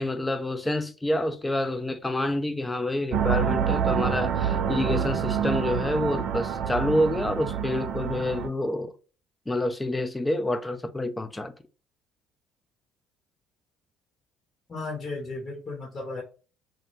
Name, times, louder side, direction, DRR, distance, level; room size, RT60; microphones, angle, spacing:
voice 1, 0.0-8.9 9.5-11.5, left 1 dB, 15° left, 0.4 m, -28 dB
sound 1, 3.1-8.5, right 8 dB, 60° right, 0.3 m, -27 dB
voice 2, 14.7-16.2, left 3 dB, 40° left, 0.8 m, -34 dB
2.1 x 2.0 x 3.1 m
hypercardioid pair, 60°, 0 cm